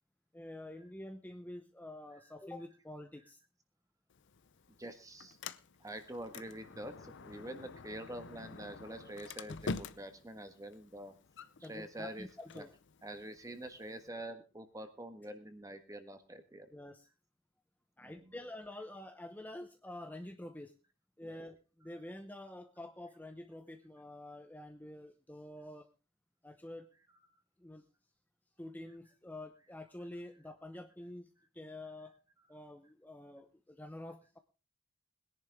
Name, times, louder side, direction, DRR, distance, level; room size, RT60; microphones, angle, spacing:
voice 1, 0.3-3.4 11.6-12.7 16.7-17.1 18.0-20.7 21.2-25.9 26.4-26.9 27.6-27.8 28.6-31.3 31.5-32.1 32.5-34.4, left 1 dB, 10° left, 6 dB, 0.8 m, -48 dB
Sliding door, 4.1-14.1, left 4 dB, 60° left, 0.7 m, -48 dB
voice 2, 4.7-5.4 5.8-11.1 11.6-12.3 12.5-12.6 13.0-16.7 18.0-18.4 21.2-21.4 27.3-27.4 32.4-32.5, right 1 dB, 15° right, 8 dB, 1.5 m, -46 dB
20.5 x 10.5 x 3.6 m, 0.32 s
head